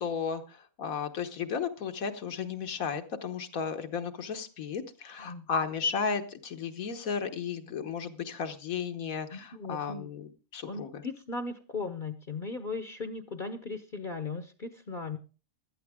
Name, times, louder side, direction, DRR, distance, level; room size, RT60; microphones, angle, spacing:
voice 1, 0.0-11.0, left 6 dB, 80° left, 8 dB, 1.6 m, -34 dB
voice 2, 9.3-10.1 10.6-15.2, left 3 dB, 40° left, 8 dB, 0.9 m, -37 dB
16.0 x 12.0 x 3.6 m, 0.35 s
omnidirectional pair, 1.4 m